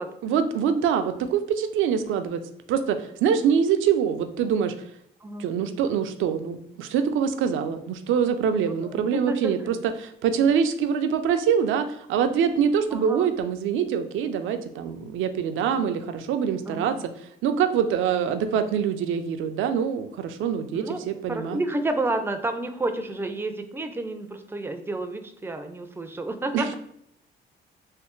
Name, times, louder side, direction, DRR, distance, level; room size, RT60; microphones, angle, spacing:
voice 1, 0.2-2.4 2.7-4.7 5.4-17.1 17.4-21.6 26.5-26.7, right 7 dB, 80° right, 8 dB, 0.4 m, -24 dB
voice 2, 8.6-9.5 12.9-13.3 16.7-17.0 20.7-26.8, right 2 dB, 10° right, 7 dB, 0.4 m, -30 dB
3.2 x 3.1 x 3.0 m, 0.72 s
cardioid pair, 90°, 20 cm